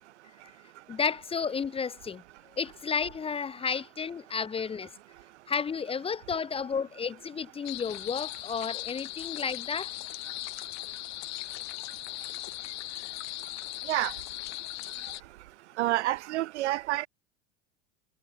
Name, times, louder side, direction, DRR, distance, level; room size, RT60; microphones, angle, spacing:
voice 1, 0.9-2.2 2.6-4.9 5.5-9.9, left 6 dB, 15° left, 0.6 m, -32 dB
sound 1, 7.7-15.2, left 20 dB, 50° left, 5.8 m, -38 dB
voice 2, 15.8-17.1, right 16 dB, 80° right, 1.1 m, -28 dB
hypercardioid pair, 105°, 34 cm